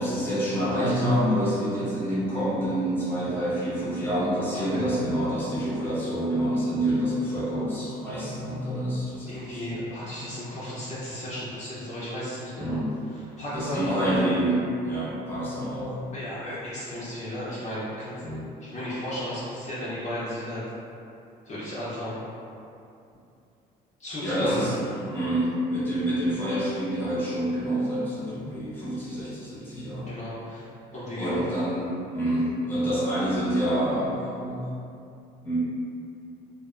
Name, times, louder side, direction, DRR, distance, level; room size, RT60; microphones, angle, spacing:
voice 1, 0.0-9.8 12.6-13.0 13.5-16.0 18.2-18.5 24.2-24.7 25.1-30.1 31.2-34.6 35.4-35.6, equal, 10° left, -9 dB, 0.8 m, -27 dB
voice 2, 9.3-12.8 13.1-14.1 16.1-18.1 18.6-20.6 21.5-22.2 24.0-24.8 30.1-30.7 30.9-31.4, left 1 dB, 45° left, -9 dB, 0.6 m, -34 dB
2.4 x 2.1 x 2.4 m, 2.6 s
cardioid pair, 110°, 17 cm